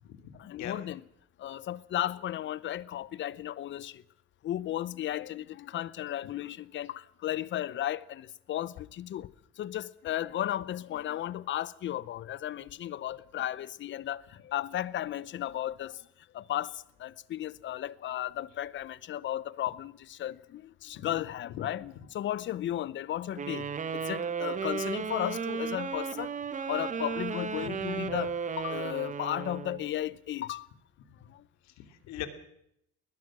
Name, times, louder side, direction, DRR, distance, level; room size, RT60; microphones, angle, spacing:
voice 1, 0.4-1.0 1.4-3.9 4.4-9.3 9.6-15.9 16.3-16.7 17.0-23.7 23.9-26.3 26.7-30.7, left 12 dB, 40° left, 0.8 m, -34 dB
sound 1, 23.4-29.9, right 6 dB, 25° right, 1.1 m, -34 dB
voice 2, 31.8-32.3, left 13 dB, 65° left, 2.7 m, -40 dB
20.5 x 20.5 x 6.2 m
cardioid pair, 145°, 30 cm